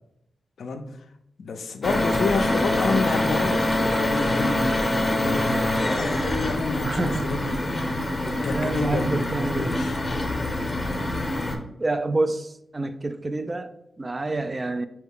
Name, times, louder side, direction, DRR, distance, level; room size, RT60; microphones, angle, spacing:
voice 1, 1.4-7.5 8.2-10.0, left 4 dB, 80° left, 8 dB, 0.3 m, -29 dB
sound 1, 1.8-11.6, left 1 dB, 30° left, 0.6 m, -25 dB
voice 2, 6.8-7.5 8.5-9.9 11.8-14.9, right 2 dB, 35° right, 11 dB, 0.3 m, -28 dB
4.4 x 2.2 x 3.5 m, 0.79 s
cardioid pair, 55°, 0 cm